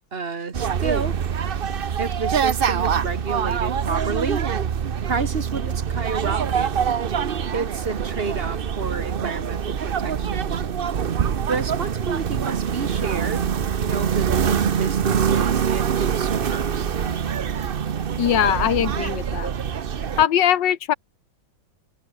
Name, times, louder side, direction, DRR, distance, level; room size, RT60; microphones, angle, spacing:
voice 1, 0.1-1.2 2.0-4.4 5.0-6.7 7.5-10.6 11.5-13.5 13.8-16.9, right 4 dB, 30° right, 1.7 m, -30 dB
sound 1, 0.5-20.2, right 7 dB, 60° right, 0.5 m, -24 dB
voice 2, 18.2-19.5 20.2-20.9, left 10 dB, 65° left, 1.7 m, -20 dB
omnidirectional pair, 2.2 m